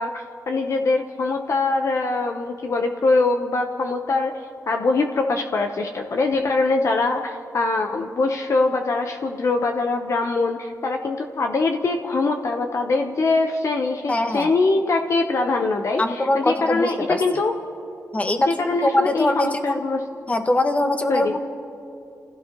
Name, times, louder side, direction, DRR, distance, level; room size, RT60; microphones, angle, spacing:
voice 1, 0.0-17.6 18.5-20.0 21.1-21.3, left 3 dB, 55° left, 4 dB, 0.9 m, -23 dB
voice 2, 14.1-14.5 16.0-17.2 18.1-18.5 18.8-19.8 20.3-21.4, left 1 dB, 25° left, 5 dB, 1.4 m, -22 dB
30.0 x 16.0 x 3.0 m, 2.7 s
cardioid pair, 95°, 6 cm